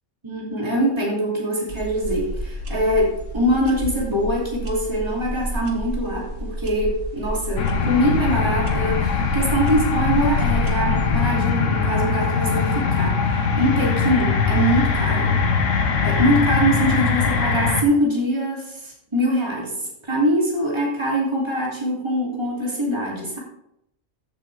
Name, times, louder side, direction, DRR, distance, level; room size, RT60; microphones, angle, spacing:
voice 1, 0.2-15.3 16.0-19.7 20.1-23.4, equal, 20° right, -4 dB, 2.9 m, -23 dB
sound 1, 1.7-11.2, right 1 dB, 85° right, 1.8 m, -30 dB
sound 2, 7.6-17.8, left 5 dB, 80° left, 1.4 m, -21 dB
14.0 x 7.5 x 3.4 m, 0.78 s
omnidirectional pair, 1.3 m